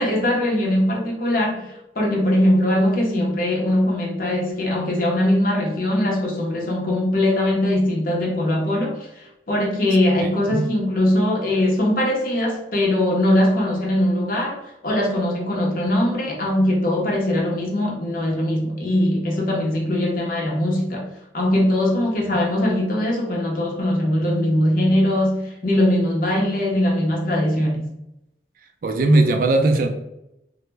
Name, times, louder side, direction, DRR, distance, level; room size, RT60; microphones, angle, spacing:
voice 1, 0.0-14.6 14.8-21.1 21.3-27.8, left 1 dB, 50° left, -2 dB, 0.6 m, -21 dB
voice 2, 10.2-10.7 28.8-29.9, right 2 dB, 50° right, 5 dB, 0.3 m, -18 dB
2.0 x 2.0 x 3.2 m, 0.86 s
head